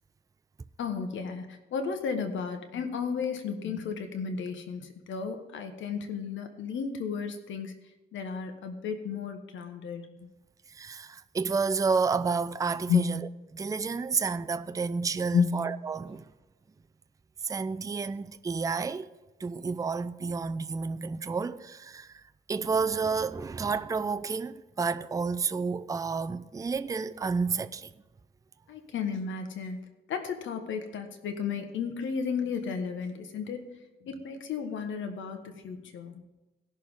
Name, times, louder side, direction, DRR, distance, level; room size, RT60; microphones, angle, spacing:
voice 1, 0.8-7.7 8.1-10.3 12.9-13.1 15.3-15.6 28.7-29.8 30.1-33.7 34.0-36.2, left 6 dB, 80° left, 1.3 m, -33 dB
voice 2, 10.7-13.2 13.5-16.2 17.4-19.1 19.4-22.2 22.5-27.9, right 5 dB, 15° right, 0.4 m, -30 dB
18.0 x 6.6 x 3.7 m
cardioid pair, 100°, 19 cm